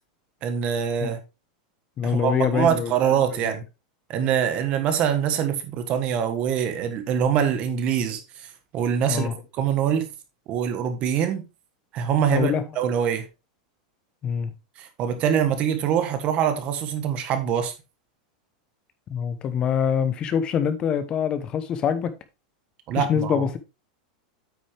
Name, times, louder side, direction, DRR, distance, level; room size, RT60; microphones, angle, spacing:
voice 1, 0.4-1.2 2.0-3.6 4.1-8.5 8.7-9.3 9.5-10.1 10.5-11.4 11.9-13.3 14.8-17.7 22.9-23.4, right 8 dB, 30° right, 1.4 m, -24 dB
voice 2, 2.0-2.9 3.4-3.5 9.1-9.3 12.3-12.6 14.2-14.5 19.1-22.1 22.9-23.6, left 8 dB, 20° left, 0.9 m, -24 dB
9.0 x 6.2 x 3.4 m
supercardioid pair, 170°, 4 cm